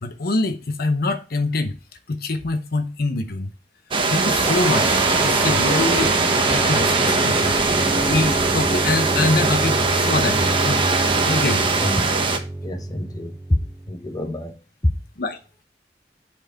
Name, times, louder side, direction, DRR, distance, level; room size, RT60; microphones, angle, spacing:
voice 1, 0.0-1.8 2.1-3.5 4.1-6.2 6.5-7.5 8.1-10.9 11.3-11.7 15.2-15.4, left 2 dB, 60° left, 0.8 m, -24 dB
sound 1, 3.9-12.4, right 3 dB, 30° right, 1.0 m, -21 dB
sound 2, 4.4-14.1, right 1 dB, 10° right, 0.3 m, -28 dB
voice 2, 12.6-13.6 13.9-14.5 14.8-14.9, left 1 dB, 20° left, 1.0 m, -25 dB
7.8 x 4.6 x 4.4 m
head